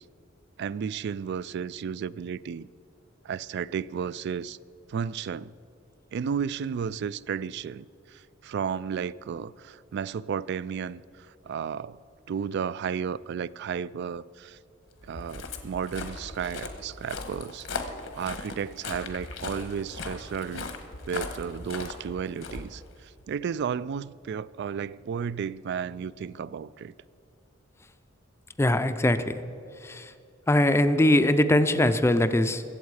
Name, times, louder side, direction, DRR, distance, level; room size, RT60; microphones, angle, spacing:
voice 1, 0.6-2.7 3.2-4.6 4.9-5.5 6.1-12.0 12.3-14.6 15.0-17.7 18.2-20.7 21.1-26.9, right 7 dB, 55° right, 0.3 m, -33 dB
Walk footsteps, 15.0-23.3, left 3 dB, 75° left, 1.3 m, -38 dB
voice 2, 28.6-29.4 29.8-30.1 30.5-32.6, left 1 dB, 15° left, 0.5 m, -22 dB
22.0 x 8.1 x 4.8 m
head